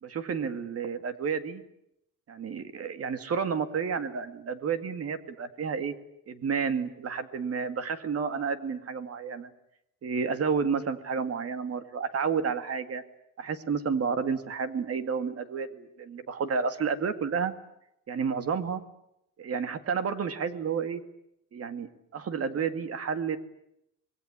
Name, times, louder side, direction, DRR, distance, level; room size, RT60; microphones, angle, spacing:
voice 1, 0.0-1.6 2.3-5.9 6.3-9.5 10.0-13.0 13.4-17.5 18.1-18.8 19.4-21.0 21.5-23.4, right 6 dB, 45° right, 10 dB, 2.2 m, -31 dB
26.0 x 21.0 x 9.9 m, 0.79 s
wide cardioid pair, 180°, 32 cm